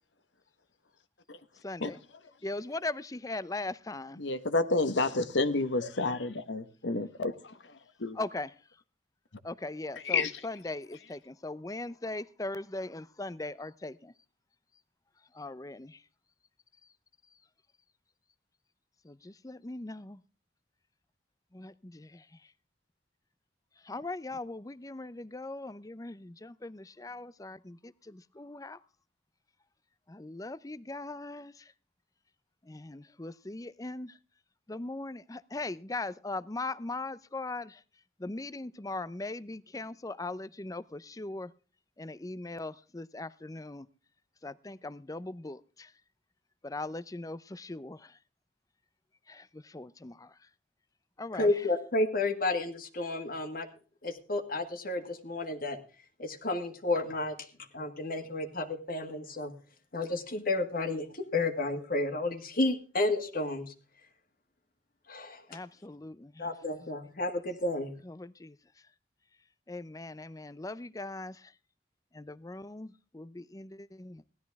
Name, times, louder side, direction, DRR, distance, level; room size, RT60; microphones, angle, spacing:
voice 1, 1.6-2.0 2.4-4.2 8.1-8.5 9.4-14.1 15.3-16.0 19.0-20.2 21.5-22.3 23.8-28.8 30.1-31.7 32.6-34.2 34.7-37.8 38.2-41.5 42.0-43.9 44.4-45.9 46.6-48.2 49.3-50.3 51.2-51.5 65.5-66.5 68.0-68.6 69.7-71.5 72.1-74.2, left 2 dB, 20° left, 0.6 m, -40 dB
voice 2, 4.2-7.5 8.0-8.2 10.0-10.3, left 3 dB, 90° left, 1.3 m, -29 dB
voice 3, 51.3-53.7 54.0-55.8 56.2-57.4 57.7-59.5 59.9-63.7 65.1-65.4 66.4-67.9, left 2 dB, 50° left, 1.7 m, -31 dB
17.0 x 12.5 x 3.5 m
head